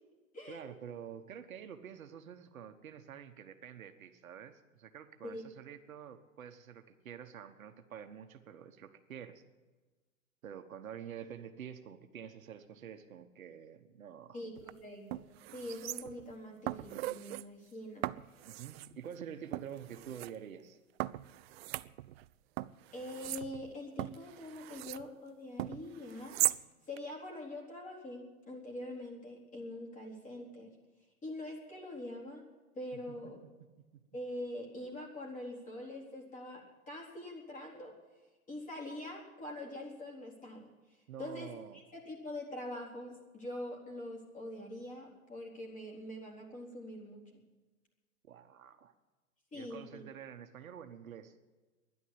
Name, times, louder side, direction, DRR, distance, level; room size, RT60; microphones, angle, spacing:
voice 1, 0.5-9.4 10.4-14.4 18.4-20.8 41.1-41.8 48.2-48.9 49.5-51.3, right 8 dB, 75° right, 7 dB, 1.4 m, -48 dB
voice 2, 14.3-18.1 22.9-26.4 26.9-30.7 31.2-32.4 32.7-33.4 34.1-37.9 38.5-40.7 41.2-41.5 41.9-47.3 49.5-50.0, left 1 dB, 20° left, -1 dB, 4.1 m, -44 dB
sound 1, 14.6-14.7 15.1-16.3 16.7-17.4 18.0-18.9 19.5-20.3 21.0-22.3 22.6-25.1 25.6-26.6 27.0-27.1, right 17 dB, 50° right, 0.5 m, -38 dB
12.5 x 11.0 x 8.8 m, 1.2 s
hypercardioid pair, 115°, 41 cm